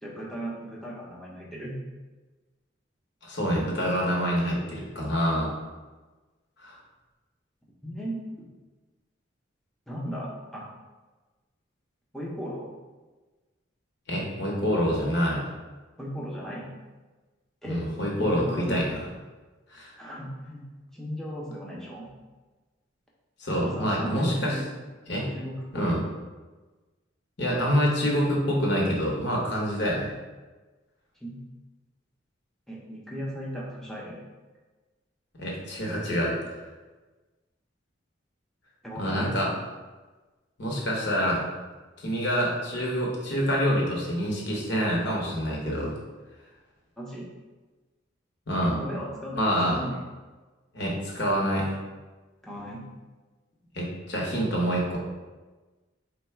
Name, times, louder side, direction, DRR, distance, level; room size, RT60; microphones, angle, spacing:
voice 1, 0.0-1.8 7.8-8.5 9.9-10.6 12.1-12.7 16.0-16.7 17.6-17.8 18.2-18.8 20.0-20.6 20.9-22.1 23.6-24.6 25.3-25.9 31.2-31.4 32.7-34.2 38.8-39.5 47.0-47.2 48.6-49.4 49.7-50.0 52.4-52.8, equal, ahead, -5 dB, 0.8 m, -36 dB
voice 2, 3.2-5.5 6.6-6.8 14.1-15.4 17.6-19.0 19.7-19.9 23.4-24.6 25.1-25.3 25.7-26.0 27.4-30.1 35.4-36.3 38.9-39.5 40.6-41.5 42.0-45.9 48.5-48.8 49.4-49.8 50.7-51.7 53.7-55.0, equal, 60° left, -3 dB, 1.1 m, -26 dB
4.3 x 2.3 x 4.3 m, 1.2 s
head